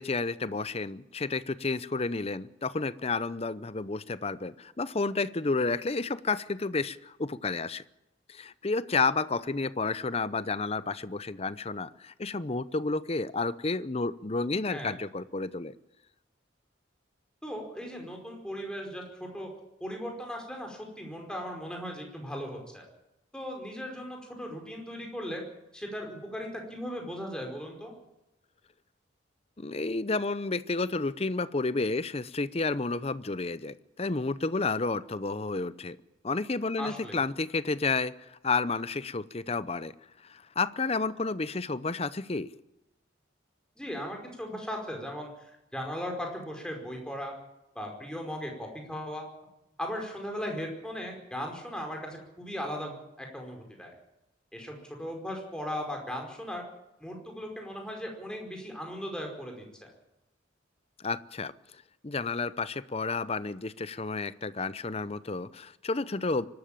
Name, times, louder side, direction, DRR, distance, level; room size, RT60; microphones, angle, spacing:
voice 1, 0.0-7.8 8.3-15.7 29.6-36.0 36.2-39.9 40.2-42.5 61.0-61.5 62.0-66.5, left 3 dB, 30° left, 16 dB, 0.7 m, -31 dB
voice 2, 17.4-19.5 19.8-22.8 23.3-25.4 25.7-27.9 36.8-37.2 43.8-47.3 47.7-49.2 49.8-53.9 54.5-56.6 57.0-59.9, equal, 5° left, 1 dB, 5.0 m, -37 dB
24.5 x 13.0 x 8.9 m, 0.90 s
head